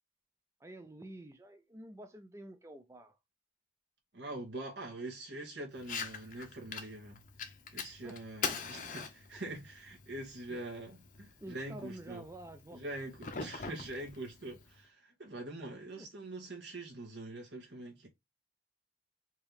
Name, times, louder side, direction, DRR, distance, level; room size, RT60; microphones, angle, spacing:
voice 1, 0.6-3.2 8.0-8.2 8.4-8.8 10.5-10.6 11.4-12.8 16.0-16.1, right 1 dB, 15° right, 0.4 m, -49 dB
voice 2, 4.1-7.2 7.7-12.2 12.7-18.1, right 2 dB, 75° right, 1.7 m, -44 dB
Fire, 5.8-14.8, left 5 dB, 45° left, 0.7 m, -44 dB
4.4 x 2.9 x 3.4 m
head